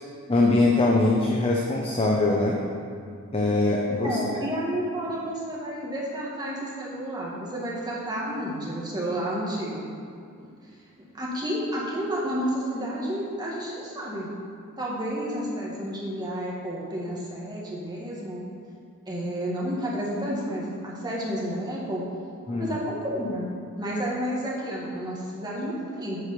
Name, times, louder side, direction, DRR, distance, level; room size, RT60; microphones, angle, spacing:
voice 1, 0.3-2.6 3.3-4.2 22.5-22.7, left 2 dB, 25° left, -2 dB, 0.7 m, -22 dB
voice 2, 4.0-9.9 10.4-10.5 11.1-14.3 14.8-18.4 19.1-22.0 22.5-23.5 23.8-26.2, equal, 20° right, -5 dB, 1.7 m, -31 dB
8.1 x 4.9 x 7.0 m, 2.3 s
head